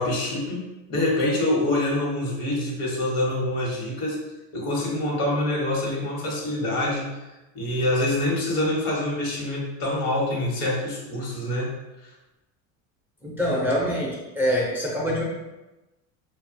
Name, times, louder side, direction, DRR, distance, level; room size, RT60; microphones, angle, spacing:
voice 1, 0.0-4.2 4.5-11.7 12.0-12.1, left 1 dB, 75° left, -3 dB, 1.1 m, -26 dB
voice 2, 13.2-15.2, equal, 5° right, -5 dB, 0.4 m, -25 dB
2.6 x 2.3 x 2.5 m, 1.0 s
supercardioid pair, 110°, 38 cm